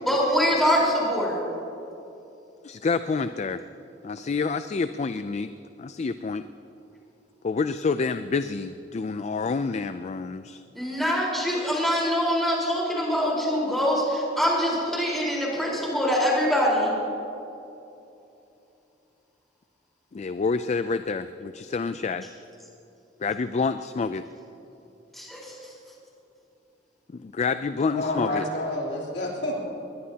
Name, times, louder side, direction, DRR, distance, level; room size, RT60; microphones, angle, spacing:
voice 1, 0.1-1.4 10.7-16.9 25.1-25.6, equal, ahead, -5 dB, 4.3 m, -24 dB
voice 2, 2.6-3.6 4.0-5.5 5.8-6.4 7.4-10.6 20.1-21.2 21.6-22.2 23.2-24.2 27.1-28.4, left 4 dB, 40° left, 11 dB, 0.4 m, -28 dB
voice 3, 27.9-29.5, left 1 dB, 65° left, -4 dB, 3.4 m, -29 dB
21.0 x 21.0 x 2.9 m, 2.8 s
head